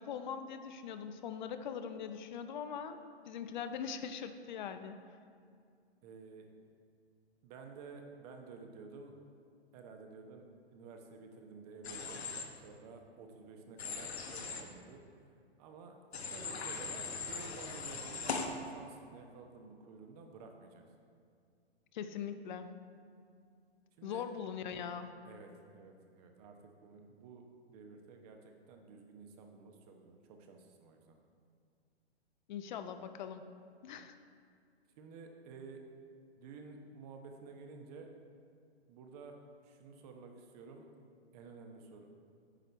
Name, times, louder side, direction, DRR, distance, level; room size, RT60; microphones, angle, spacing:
voice 1, 0.0-5.0 21.9-22.7 24.0-25.1 32.5-33.4 33.8-34.1, left 7 dB, 45° left, 9 dB, 0.6 m, -41 dB
voice 2, 6.0-6.5 7.4-9.1 9.7-10.5 10.7-12.2 12.6-15.0 15.6-18.4 18.6-20.8 24.0-24.2 25.2-26.6 26.8-31.2 35.0-35.8 36.4-38.1 38.9-39.4 39.6-40.9 41.3-42.1, right 4 dB, 35° right, 3 dB, 1.0 m, -52 dB
Human voice / Train, 11.8-12.4 13.8-14.6 16.1-18.5, left 5 dB, 75° left, 1.1 m, -40 dB
9.0 x 6.5 x 4.3 m, 2.3 s
hypercardioid pair, 125°, 33 cm